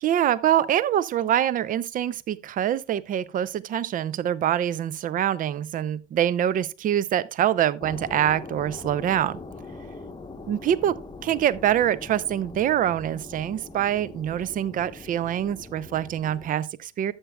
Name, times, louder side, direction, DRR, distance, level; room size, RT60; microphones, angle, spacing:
voice 1, 0.0-9.4 10.5-17.1, right 10 dB, 25° right, 0.5 m, -25 dB
sound 1, 7.8-16.5, left 3 dB, 10° left, 0.9 m, -42 dB
13.0 x 7.8 x 2.2 m
figure-of-eight pair, 70°, 35 cm